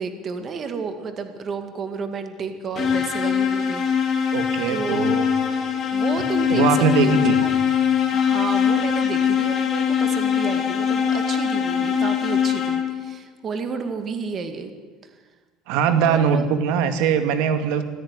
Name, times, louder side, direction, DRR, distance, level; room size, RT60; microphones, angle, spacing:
voice 1, 0.0-4.4 4.7-5.4 5.9-7.5 8.1-14.7 15.9-16.5, right 5 dB, 30° right, 7 dB, 2.2 m, -31 dB
sound 1, 2.7-13.1, left 8 dB, 30° left, 3.4 m, -22 dB
voice 2, 4.3-5.1 6.5-7.4 15.7-17.8, right 7 dB, 75° right, 9 dB, 2.2 m, -21 dB
25.0 x 16.0 x 9.8 m, 1.4 s
cardioid pair, 165°, 0 cm